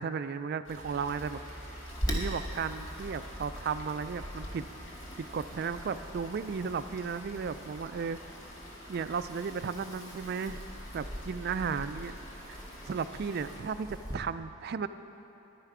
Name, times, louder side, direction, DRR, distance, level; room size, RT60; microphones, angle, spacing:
voice 1, 0.0-1.4 1.8-4.7 5.2-8.3 8.9-10.6 10.9-12.1 12.5-12.6 12.9-14.9, right 6 dB, 50° right, 12 dB, 0.3 m, -35 dB
sound 1, 0.6-13.6, left 1 dB, 70° left, 1.6 m, -50 dB
sound 2, 0.8-12.2 12.5-12.6, equal, 5° right, 1.1 m, -52 dB
Wind, 1.9-14.1, equal, 20° left, 1.0 m, -42 dB
10.5 x 9.9 x 4.9 m, 3.0 s
head